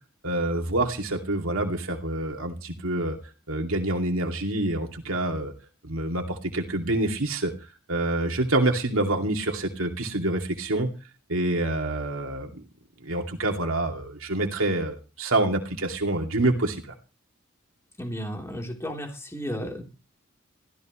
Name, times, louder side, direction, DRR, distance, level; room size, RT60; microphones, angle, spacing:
voice 1, 0.2-3.2 3.5-5.5 5.8-7.5 7.9-10.9 11.3-12.6 13.0-16.9, right 2 dB, 80° right, 2 dB, 2.5 m, -27 dB
voice 2, 18.0-19.8, equal, 15° left, 1 dB, 3.4 m, -33 dB
21.5 x 15.5 x 3.1 m, 0.33 s
head